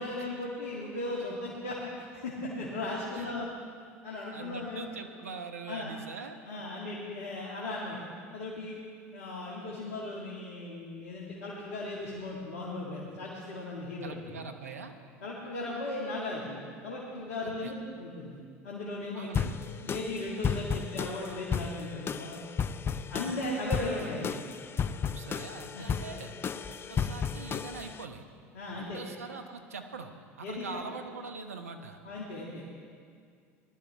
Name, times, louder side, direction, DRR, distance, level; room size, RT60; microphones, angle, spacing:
voice 1, 0.0-3.5 4.0-4.9 5.7-5.9 6.5-8.8 9.1-14.3 15.2-19.3 19.8-22.4 23.1-24.4 25.7-25.9 28.5-29.0 30.4-30.6 32.0-32.6, left 2 dB, 75° left, -5 dB, 1.8 m, -37 dB
voice 2, 4.3-6.4 14.0-14.9 17.4-17.7 19.2-19.6 25.1-26.4 26.7-28.2 28.7-30.1 30.4-32.0, right 4 dB, 85° right, 7 dB, 0.9 m, -43 dB
sound 1, 19.3-28.0, left 6 dB, 30° left, 0.5 m, -34 dB
18.5 x 12.0 x 3.4 m, 2.2 s
hypercardioid pair, 75°, 8 cm